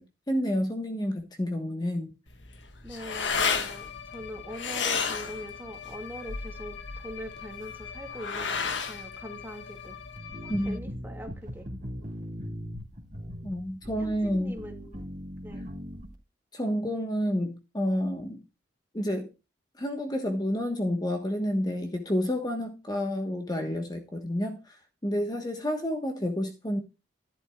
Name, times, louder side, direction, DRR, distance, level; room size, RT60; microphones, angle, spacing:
voice 1, 0.0-2.1 10.5-10.8 13.4-14.6 16.5-18.4 18.9-19.3 19.8-24.8 25.0-26.8, equal, 25° left, 1.2 m, -29 dB
sound 1, 2.3-10.2, left 5 dB, 90° left, 1.5 m, -33 dB
voice 2, 2.8-10.0 10.4-11.7 14.0-15.1 15.4-15.7, equal, 10° right, 2.1 m, -42 dB
sound 2, 3.1-10.8, left 9 dB, 70° left, 1.9 m, -44 dB
sound 3, 10.2-16.2, equal, 45° right, 2.2 m, -40 dB
12.0 x 10.5 x 2.3 m
head